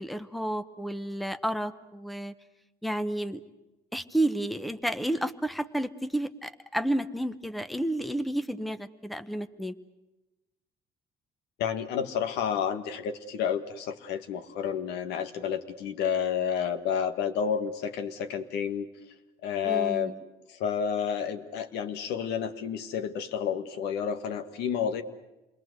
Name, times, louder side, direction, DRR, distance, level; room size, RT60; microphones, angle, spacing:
voice 1, 0.0-2.3 2.8-3.4 3.9-9.7 19.6-20.2, right 1 dB, ahead, 11 dB, 0.9 m, -31 dB
voice 2, 11.6-18.9 19.4-20.1 20.5-25.0, left 8 dB, 80° left, 8 dB, 1.6 m, -30 dB
28.0 x 21.0 x 8.0 m, 1.0 s
cardioid pair, 110°, 17 cm